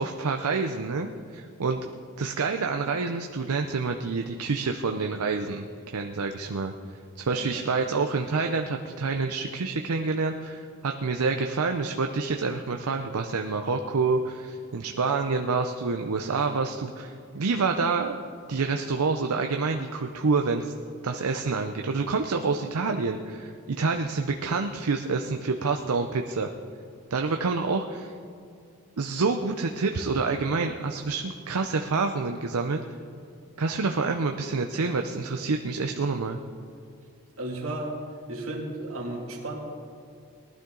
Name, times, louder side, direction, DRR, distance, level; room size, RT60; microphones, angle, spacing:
voice 1, 0.0-1.9 2.2-18.2 18.5-20.7 21.0-26.5 27.1-28.1 29.0-32.8 33.6-36.4, right 4 dB, 90° right, 5 dB, 0.6 m, -27 dB
voice 2, 37.4-37.9 38.3-39.6, right 2 dB, 70° right, -1 dB, 2.5 m, -33 dB
19.0 x 12.0 x 3.9 m, 2.4 s
head